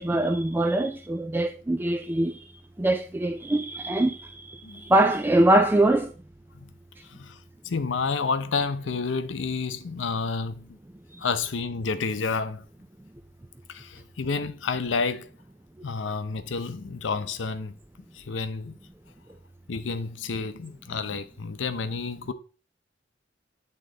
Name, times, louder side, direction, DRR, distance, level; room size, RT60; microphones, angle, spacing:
voice 1, 0.0-2.4 2.8-6.1 11.1-11.2, right 1 dB, 10° right, 0.3 m, -23 dB
voice 2, 7.6-10.8 11.2-12.6 13.7-15.3 15.8-17.8 18.1-18.7 19.7-22.3, left 4 dB, 90° left, 0.6 m, -30 dB
8.7 x 3.8 x 3.8 m
head